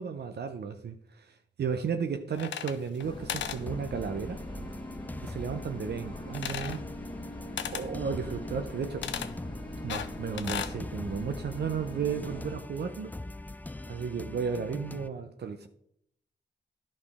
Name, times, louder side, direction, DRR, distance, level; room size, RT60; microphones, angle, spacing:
voice 1, 0.0-4.4 5.2-6.8 7.7-9.1 9.8-13.1 13.9-15.7, right 6 dB, 65° right, 0.6 m, -34 dB
sound 1, 2.3-3.0 3.3-3.6 6.3-6.8 7.6-7.9 9.0-9.3 9.9-10.8, left 9 dB, 80° left, 0.5 m, -35 dB
sound 2, 3.0-12.6, left 1 dB, 25° left, 1.7 m, -42 dB
sound 3, 3.7-15.1, left 2 dB, 10° left, 0.3 m, -42 dB
11.0 x 5.1 x 3.5 m
supercardioid pair, 40°, 18 cm